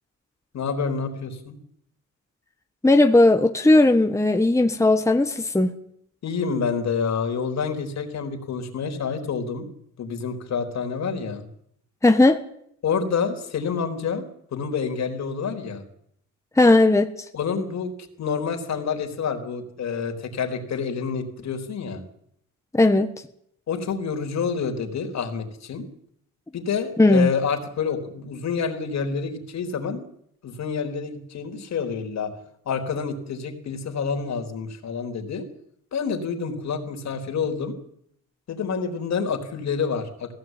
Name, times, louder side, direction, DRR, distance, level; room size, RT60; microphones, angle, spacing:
voice 1, 0.5-1.6 6.2-9.7 10.0-11.4 12.8-14.2 14.5-15.8 17.3-17.9 18.2-22.0 23.7-25.9 26.5-30.0 30.4-32.3 32.7-35.4 35.9-37.7 38.5-40.3, left 6 dB, 60° left, 5 dB, 4.0 m, -28 dB
voice 2, 2.8-5.7 12.0-12.4 16.6-17.1 22.7-23.1 27.0-27.3, left 2 dB, 10° left, 6 dB, 1.4 m, -17 dB
18.5 x 16.5 x 9.3 m, 0.71 s
cardioid pair, 90°, 30 cm